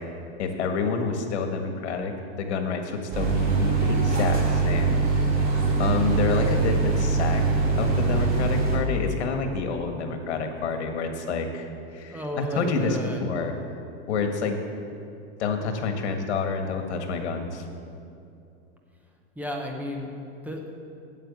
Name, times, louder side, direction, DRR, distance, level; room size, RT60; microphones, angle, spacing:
voice 1, 0.4-2.1 2.4-5.1 5.5-7.4 7.8-11.7 11.9-13.5 14.1-14.6 15.4-17.6, left 4 dB, 85° left, 5 dB, 1.7 m, -28 dB
sound 1, 3.1-8.8, right 3 dB, 25° right, 2.8 m, -23 dB
voice 2, 12.1-13.2 19.4-20.1 20.4-20.8, equal, 5° right, 1 dB, 0.9 m, -32 dB
9.2 x 7.9 x 8.2 m, 2.5 s
supercardioid pair, 150°, 33 cm